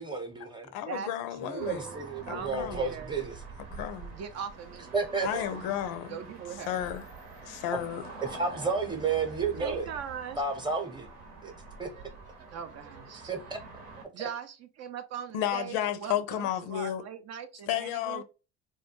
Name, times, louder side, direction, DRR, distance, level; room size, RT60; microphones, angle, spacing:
voice 1, 0.0-0.7 1.4-3.3 4.9-5.4 8.2-9.9 10.4-11.1 11.4-11.5 11.8-11.9 13.2-13.6, right 4 dB, 15° right, 0.8 m, -31 dB
voice 2, 0.7-1.8 2.2-2.8 3.7-4.2 5.2-6.2 6.7-7.0 7.4-8.1 15.3-17.0 17.7-18.2, left 11 dB, 70° left, 0.5 m, -32 dB
voice 3, 1.4-3.2 4.1-4.9 5.5-5.6 6.1-6.8 9.6-10.4 12.5-13.3 14.1-18.2, right 8 dB, 45° right, 0.5 m, -40 dB
sound 1, 1.6-14.0, right 3 dB, 75° right, 0.9 m, -46 dB
2.2 x 2.2 x 2.9 m
hypercardioid pair, 65°, 36 cm